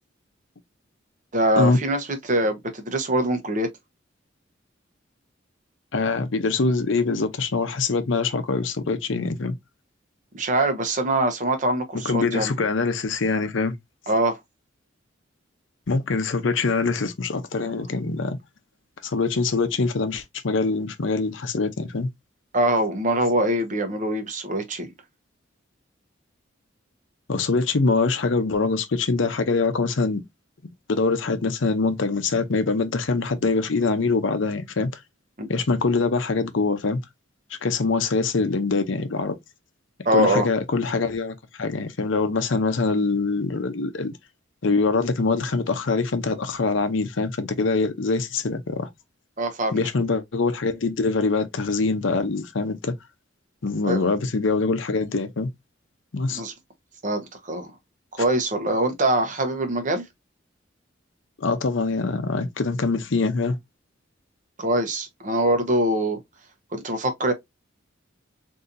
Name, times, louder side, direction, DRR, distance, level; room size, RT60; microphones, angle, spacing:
voice 1, 1.3-3.7 10.3-12.5 14.1-14.4 22.5-24.9 35.4-35.5 40.0-40.5 49.4-49.8 53.8-54.1 56.3-56.5 57.0-57.7 58.1-60.0 64.6-66.2 66.7-67.3, right 1 dB, 40° right, 0.8 m, -23 dB
voice 2, 5.9-9.5 12.0-13.7 15.9-18.4 19.0-22.1 27.3-30.2 30.9-34.9 35.5-37.0 37.6-39.3 40.1-44.2 44.6-48.9 49.7-52.9 53.6-55.5 56.1-56.4 61.4-63.6, left 3 dB, 75° left, 0.7 m, -24 dB
4.0 x 2.7 x 2.5 m
head